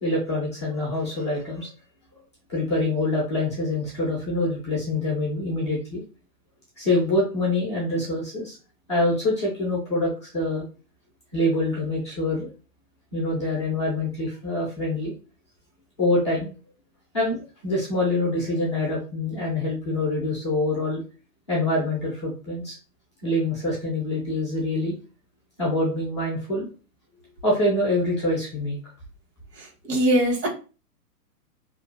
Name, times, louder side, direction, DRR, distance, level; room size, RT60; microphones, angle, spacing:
voice 1, 0.0-1.7 2.5-6.0 6.8-8.6 8.9-10.6 11.3-12.5 13.1-15.1 16.0-16.5 17.1-21.0 21.5-22.8 23.2-25.0 25.6-26.7 27.4-28.8, left 1 dB, 20° left, -4 dB, 0.4 m, -25 dB
voice 2, 29.6-30.5, right 1 dB, 90° right, 1 dB, 1.3 m, -22 dB
2.5 x 2.2 x 2.5 m, 0.34 s
hypercardioid pair, 150°, 47 cm